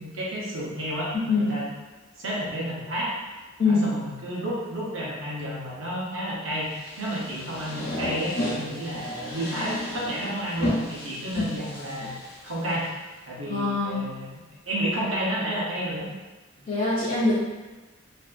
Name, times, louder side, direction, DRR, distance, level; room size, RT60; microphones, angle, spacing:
voice 1, 0.0-1.7 2.2-3.2 3.6-12.2 12.4-12.9 13.3-14.3 14.7-16.0, right 1 dB, 70° right, -5 dB, 0.8 m, -31 dB
sound 1, 6.7-12.9, left 1 dB, 80° left, 0.9 m, -33 dB
voice 2, 13.5-14.1 16.7-17.4, left 3 dB, 35° left, -11 dB, 0.5 m, -23 dB
2.6 x 2.3 x 2.5 m, 1.2 s
head